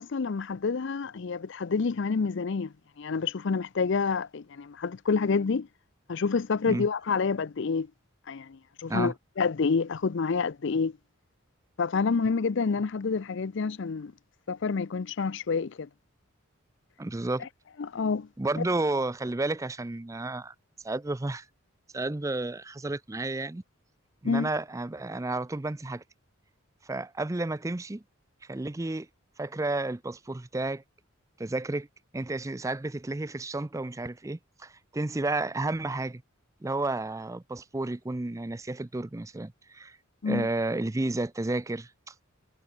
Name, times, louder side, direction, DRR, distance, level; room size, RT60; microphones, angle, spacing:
voice 1, 0.0-5.7 6.1-7.9 8.3-10.9 11.8-14.1 14.5-15.9 17.8-18.3 18.6-18.7 24.2-24.5 40.2-40.5, left 5 dB, 55° left, 0.5 m, -28 dB
voice 2, 17.0-17.5 18.4-20.5 20.8-21.5 21.9-23.6 24.2-26.0 26.8-28.0 28.5-29.1 29.4-30.8 31.4-31.9 32.1-36.2 36.6-40.0 40.3-42.1, right 2 dB, 15° right, 0.4 m, -31 dB
head